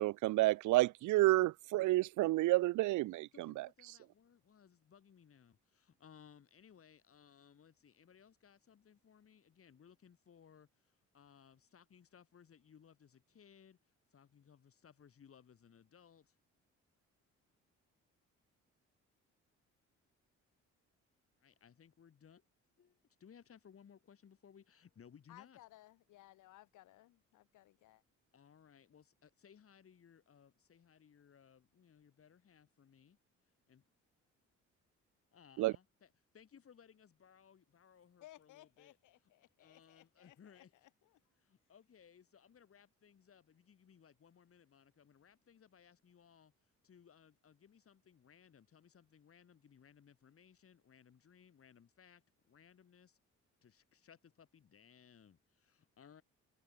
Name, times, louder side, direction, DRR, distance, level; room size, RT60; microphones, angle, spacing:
voice 1, 0.0-3.7 35.6-35.7, right 18 dB, 80° right, 0.5 m, -30 dB
voice 2, 3.3-13.8 14.1-16.3 21.4-22.4 22.8-25.6 28.3-33.2 33.7-33.8 35.3-39.0 39.6-40.7 41.4-46.5 46.8-53.2 53.6-56.2, left 7 dB, 50° left, 4.4 m, -63 dB
voice 3, 25.3-28.0 38.2-41.2, left 15 dB, 90° left, 4.1 m, -61 dB
open air
cardioid pair, 95°, 30 cm